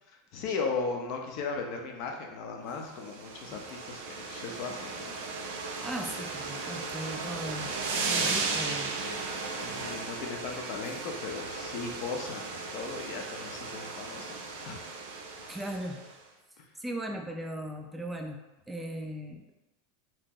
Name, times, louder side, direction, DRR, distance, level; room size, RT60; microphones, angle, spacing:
voice 1, 0.3-5.1 9.6-14.8 16.6-16.7, left 4 dB, 50° left, 2 dB, 0.5 m, -37 dB
sound 1, 2.9-16.1, right 4 dB, 75° right, 0.5 m, -36 dB
voice 2, 5.8-7.7 8.0-8.9 15.5-16.0 16.8-18.4 18.7-19.5, right 1 dB, 5° right, 2 dB, 0.3 m, -38 dB
2.8 x 2.1 x 3.6 m, 1.0 s
supercardioid pair, 135°, 0 cm